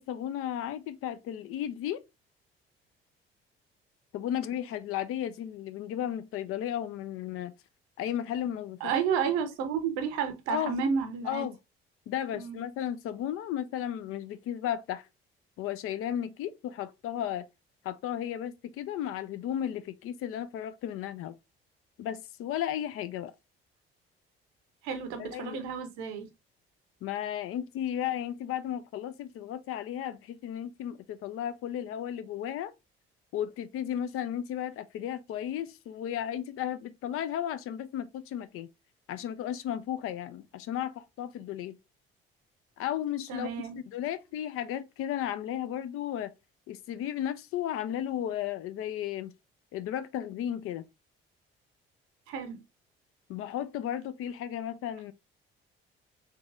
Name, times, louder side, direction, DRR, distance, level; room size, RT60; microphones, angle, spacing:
voice 1, 0.0-2.0 4.1-7.5 8.0-8.9 10.5-10.8 11.3-11.6 12.1-15.1 15.6-17.5 17.8-21.3 22.0-23.3 25.2-25.6 27.0-32.7 33.3-38.7 39.1-41.8 42.8-43.5 43.9-46.3 46.7-49.3 49.7-50.8 53.3-55.1, left 10 dB, 45° left, 0.4 m, -34 dB
voice 2, 8.8-11.5 12.3-12.6 24.8-26.3 43.3-43.8 52.3-52.6, right 7 dB, 65° right, 0.8 m, -31 dB
3.6 x 2.9 x 2.4 m
figure-of-eight pair, 50°, 30 cm